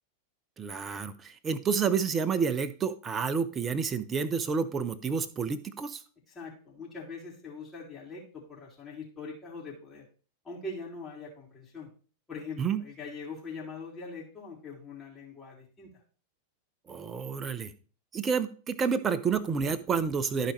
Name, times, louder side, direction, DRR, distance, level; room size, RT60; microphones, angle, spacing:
voice 1, 0.6-6.0 12.6-12.8 16.9-17.7 18.1-20.5, right 6 dB, 20° right, 14 dB, 0.8 m, -29 dB
voice 2, 6.3-10.0 10.4-11.9 12.3-16.0, left 3 dB, 15° left, -6 dB, 4.0 m, -42 dB
14.0 x 4.9 x 3.2 m, 0.39 s
figure-of-eight pair, 90°, 0 cm